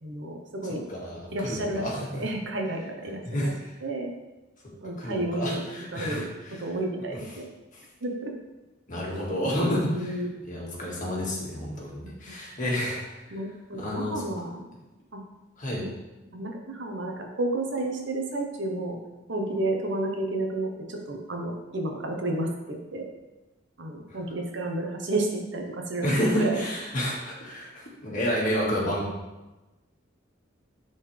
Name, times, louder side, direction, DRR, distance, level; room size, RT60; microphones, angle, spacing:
voice 1, 0.0-0.8 1.3-3.5 3.8-4.1 4.8-5.6 5.9-6.3 6.6-7.5 8.0-8.3 9.9-10.5 12.0-12.3 13.3-14.7 15.1-15.2 15.8-15.9 16.3-19.0 19.3-23.1 23.8-26.6, right 2 dB, 65° right, 2 dB, 1.1 m, -31 dB
voice 2, 0.9-2.2 3.2-3.7 5.0-6.2 7.7-7.8 8.9-10.0 10.5-13.0 13.8-14.2 15.6-15.9 26.0-29.1, equal, 45° left, -4 dB, 1.9 m, -29 dB
10.0 x 4.2 x 3.4 m, 1.1 s
head